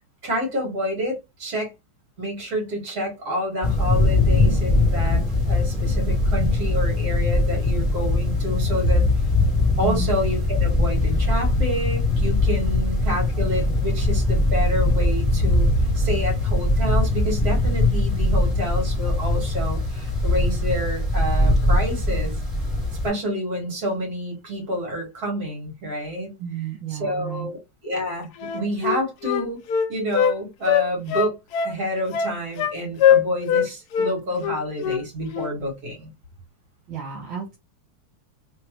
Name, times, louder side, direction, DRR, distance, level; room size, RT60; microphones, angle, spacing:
voice 1, 0.2-1.7 2.2-9.0 9.8-15.7 16.0-22.3 23.0-26.3 26.9-29.6 29.9-31.4 31.6-36.1, equal, 45° right, 2.3 m, -28 dB
sound 1, 3.6-23.1, left 2 dB, ahead, 2.0 m, -21 dB
voice 2, 26.4-27.5 36.9-37.6, right 7 dB, 70° right, 2.0 m, -31 dB
Wind instrument woodwind instrument, 28.4-30.3 30.7-31.8 32.1-32.7 33.0-33.7 33.9-34.1 34.4-35.0 35.3-35.5, left 8 dB, 85° left, 0.8 m, -21 dB
3.8 x 3.3 x 3.1 m
omnidirectional pair, 2.3 m